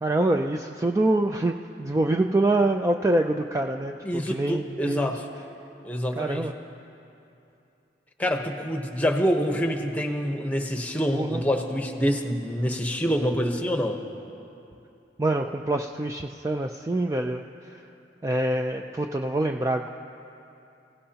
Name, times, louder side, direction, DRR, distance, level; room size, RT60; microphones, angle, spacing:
voice 1, 0.0-3.9 4.3-5.1 6.2-6.5 11.1-11.4 15.2-17.8 18.2-19.9, right 2 dB, 15° right, 3 dB, 0.4 m, -25 dB
voice 2, 4.0-5.2 5.8-6.5 8.2-14.0, equal, 10° left, 3 dB, 1.0 m, -26 dB
28.5 x 16.5 x 2.9 m, 2.8 s
head